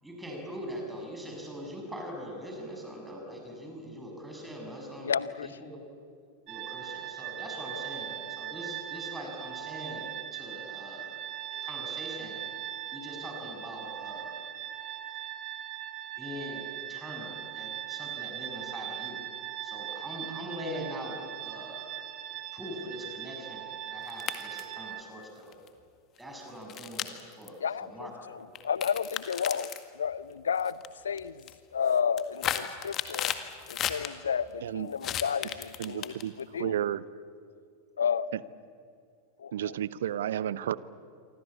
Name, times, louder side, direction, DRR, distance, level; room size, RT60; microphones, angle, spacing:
voice 1, 0.0-5.1 5.4-5.8 6.5-11.1 11.6-12.4 12.9-14.4 16.2-19.2 19.6-21.9 22.5-25.5 26.2-27.6 27.9-28.1 28.5-28.6, equal, 5° right, 1 dB, 7.2 m, -42 dB
voice 2, 5.0-5.6 7.7-7.8 27.6-30.8 31.0-31.5 31.7-33.3 33.7-36.7 38.0-38.3 39.4-39.7, left 7 dB, 70° left, 18 dB, 0.7 m, -32 dB
sound 1, 6.5-25.0, right 11 dB, 40° right, 1.5 m, -40 dB
sound 2, 24.1-24.7 25.5-25.7 26.7-27.5 28.6-29.8 30.6-30.9 31.2-31.5 31.9-34.1 35.0-36.4, left 11 dB, 30° left, 1.8 m, -34 dB
voice 3, 35.8-36.3 36.6-37.0 39.5-40.8, right 11 dB, 60° right, 18 dB, 0.8 m, -31 dB
27.5 x 24.5 x 8.5 m, 2.3 s
figure-of-eight pair, 90°, 0 cm